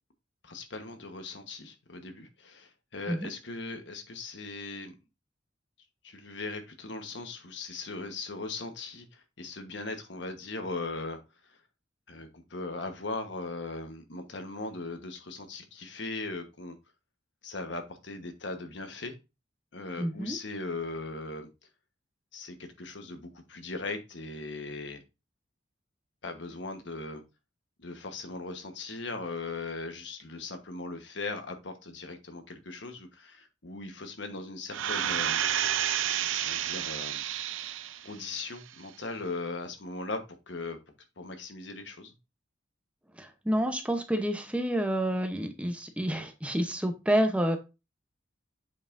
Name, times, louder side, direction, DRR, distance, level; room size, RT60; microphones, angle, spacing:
voice 1, 0.4-4.9 6.0-11.5 12.1-16.8 17.4-19.2 19.7-21.5 22.3-25.0 26.2-27.2 27.8-35.4 36.4-37.2 38.0-40.8 41.2-42.1, left 3 dB, 65° left, 7 dB, 1.2 m, -39 dB
voice 2, 20.0-20.4 43.2-47.6, equal, 5° right, 6 dB, 0.8 m, -29 dB
sound 1, 34.7-38.1 38.6-38.7, right 10 dB, 85° right, 0.5 m, -30 dB
7.5 x 5.5 x 2.6 m, 0.26 s
head